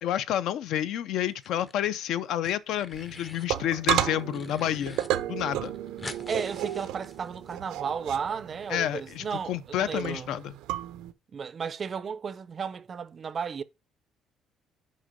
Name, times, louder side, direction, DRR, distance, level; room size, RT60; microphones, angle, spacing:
voice 1, 0.0-5.0 5.3-5.7 8.7-10.5, left 11 dB, 65° left, 0.5 m, -29 dB
sound 1, 1.3-2.0 2.2-3.5 3.9-5.1 5.4-5.5 5.6-7.6, left 2 dB, 15° left, 0.6 m, -45 dB
sound 2, 2.9-11.1, right 13 dB, 85° right, 0.6 m, -33 dB
voice 2, 6.3-10.3 11.3-13.6, right 6 dB, 30° right, 0.5 m, -33 dB
6.4 x 5.2 x 5.2 m
cardioid pair, 170°, 0 cm